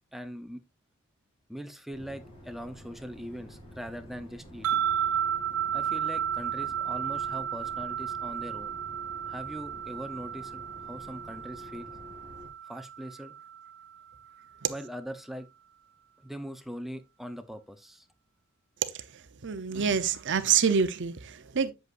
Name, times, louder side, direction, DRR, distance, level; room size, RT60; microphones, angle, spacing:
voice 1, 0.1-0.6 1.5-4.9 5.7-8.8 9.3-11.9 12.7-13.3 14.7-15.5 16.2-18.0, equal, ahead, 0.7 m, -41 dB
sound 1, 1.9-12.5, left 1 dB, 25° left, 4.2 m, -49 dB
sound 2, 4.6-13.9, right 9 dB, 75° right, 1.5 m, -33 dB
voice 2, 19.4-21.7, right 7 dB, 55° right, 0.7 m, -26 dB
8.0 x 8.0 x 2.5 m
head